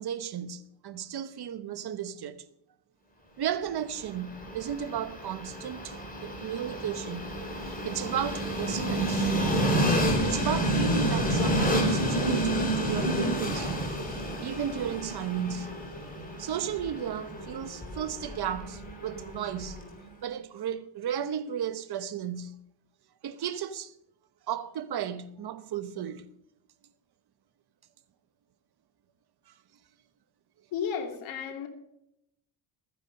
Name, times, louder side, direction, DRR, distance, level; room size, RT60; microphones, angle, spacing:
voice 1, 0.0-2.4 3.4-6.0 6.2-7.2 7.6-9.4 10.2-14.0 14.4-15.8 16.4-19.8 20.2-22.6 23.2-23.9 24.5-26.2, right 9 dB, 55° right, 1.1 m, -34 dB
Train, 3.9-20.0, right 1 dB, 20° left, 4.1 m, -30 dB
voice 2, 30.7-31.7, left 7 dB, 85° left, 2.8 m, -33 dB
14.5 x 10.0 x 5.4 m
cardioid pair, 115°, 46 cm